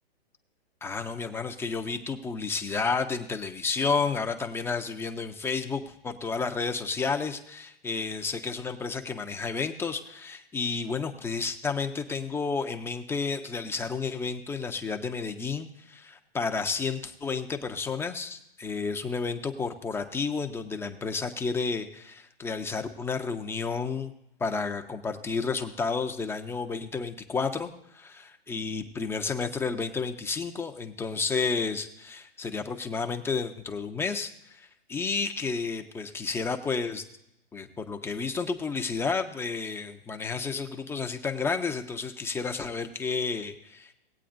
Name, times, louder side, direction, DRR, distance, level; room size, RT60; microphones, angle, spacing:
voice 1, 0.8-24.1 24.4-37.0 37.5-43.9, left 4 dB, 10° left, 5 dB, 0.5 m, -31 dB
19.0 x 8.4 x 2.5 m, 0.80 s
hypercardioid pair, 120°, 30 cm